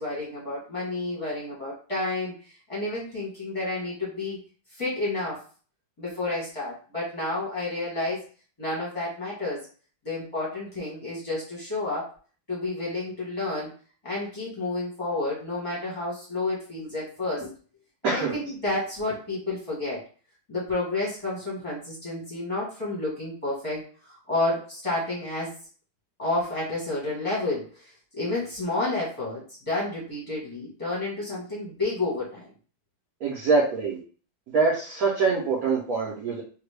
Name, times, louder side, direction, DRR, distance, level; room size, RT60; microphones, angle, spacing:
voice 1, 0.0-4.4 4.7-5.4 6.0-8.2 8.6-9.7 10.0-12.1 12.5-13.7 14.0-17.5 18.0-20.0 20.5-25.5 26.2-27.9 28.2-32.5, left 2 dB, 25° left, -6 dB, 0.8 m, -30 dB
voice 2, 18.0-18.4 33.2-34.0 34.5-36.4, right 4 dB, 60° right, -4 dB, 1.0 m, -24 dB
3.3 x 2.3 x 3.2 m, 0.40 s
omnidirectional pair, 2.0 m